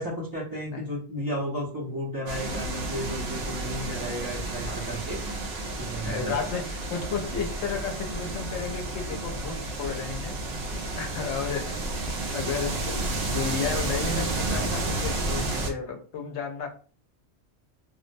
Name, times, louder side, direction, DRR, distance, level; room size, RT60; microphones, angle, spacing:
voice 1, 0.0-5.2 5.8-6.3, equal, 25° right, -5 dB, 0.6 m, -33 dB
sound 1, 2.3-15.7, right 2 dB, 55° right, 0.7 m, -31 dB
voice 2, 6.0-10.3 11.0-12.0 12.3-16.7, left 5 dB, 70° left, 4 dB, 0.8 m, -33 dB
2.4 x 2.0 x 2.5 m, 0.40 s
omnidirectional pair, 1.3 m